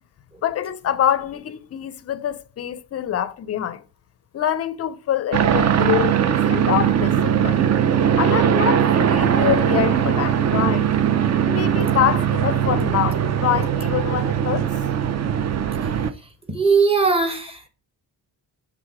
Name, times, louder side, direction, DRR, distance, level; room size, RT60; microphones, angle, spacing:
voice 1, 0.4-3.8 4.3-7.6 8.2-10.9 11.4-14.7, left 10 dB, 35° left, 0.4 m, -25 dB
sound 1, 5.3-16.1, right 9 dB, 40° right, 0.4 m, -20 dB
voice 2, 16.2-17.7, right 4 dB, 15° right, 0.9 m, -20 dB
6.4 x 3.7 x 4.7 m
wide cardioid pair, 170°, 42 cm